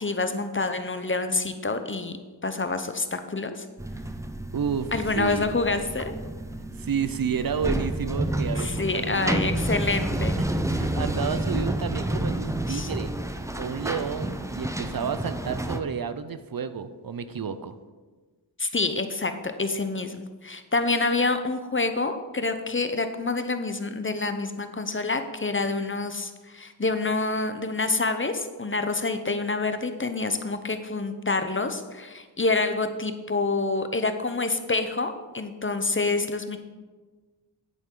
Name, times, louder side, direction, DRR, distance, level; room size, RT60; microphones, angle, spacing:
voice 1, 0.0-2.2 2.4-3.7 4.9-6.1 8.5-10.4 12.7-12.9 18.6-36.6, left 3 dB, 30° left, 8 dB, 0.7 m, -27 dB
sound 1, 3.8-15.8, right 1 dB, 5° right, 0.6 m, -29 dB
voice 2, 4.5-5.5 6.8-9.4 10.4-13.1 13.6-17.7, right 7 dB, 55° right, 11 dB, 0.6 m, -31 dB
9.9 x 8.8 x 3.8 m, 1.3 s
wide cardioid pair, 85°, 41 cm